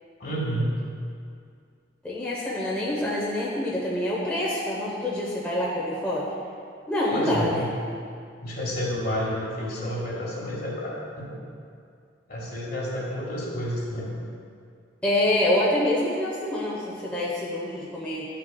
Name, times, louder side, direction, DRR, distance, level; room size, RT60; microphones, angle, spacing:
voice 1, 0.2-0.8 7.1-7.7 8.4-11.4 12.3-14.2, equal, 50° left, -4 dB, 1.7 m, -30 dB
voice 2, 2.0-6.3 6.9-7.6 15.0-18.3, left 1 dB, 5° left, -7 dB, 0.8 m, -26 dB
11.0 x 5.8 x 2.3 m, 2.3 s
head